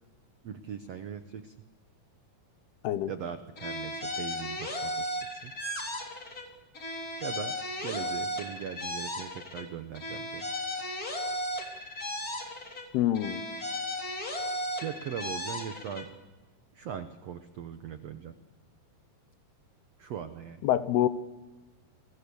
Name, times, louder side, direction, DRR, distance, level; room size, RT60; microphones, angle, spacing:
voice 1, 0.4-1.5 3.1-5.5 7.2-7.6 7.8-10.5 14.8-16.1 16.7-18.3 20.0-20.6, right 8 dB, 85° right, 8 dB, 1.4 m, -40 dB
sound 1, 3.6-6.5 6.7-9.7 9.9-12.9 13.1-16.1, left 1 dB, 25° left, 3.2 m, -35 dB
voice 2, 12.9-13.4 20.6-21.1, left 12 dB, 80° left, 13 dB, 2.9 m, -26 dB
29.5 x 22.0 x 7.0 m, 1.2 s
omnidirectional pair, 4.6 m